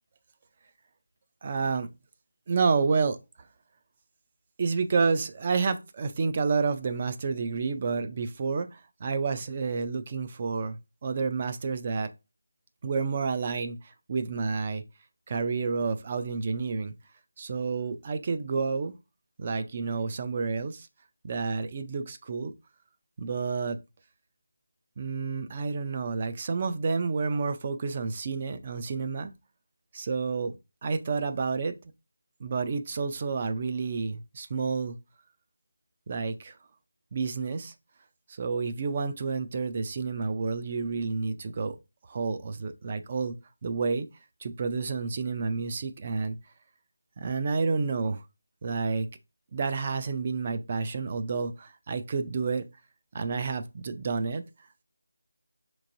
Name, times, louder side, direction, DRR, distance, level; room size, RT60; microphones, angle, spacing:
voice 1, 1.4-1.9 2.5-3.2 4.6-12.1 12.8-14.8 15.3-16.9 17.4-18.9 19.4-20.9 21.2-22.5 23.2-23.8 25.0-29.3 29.9-30.6 30.8-31.7 32.4-35.0 36.1-36.6 37.1-37.7 38.3-41.8 42.0-43.4 43.6-44.1 44.4-46.4 47.2-48.2 48.6-49.1 49.5-52.7 53.1-54.4, right 4 dB, 25° right, 0.3 m, -29 dB
5.2 x 3.0 x 2.5 m
figure-of-eight pair, 175°, 0 cm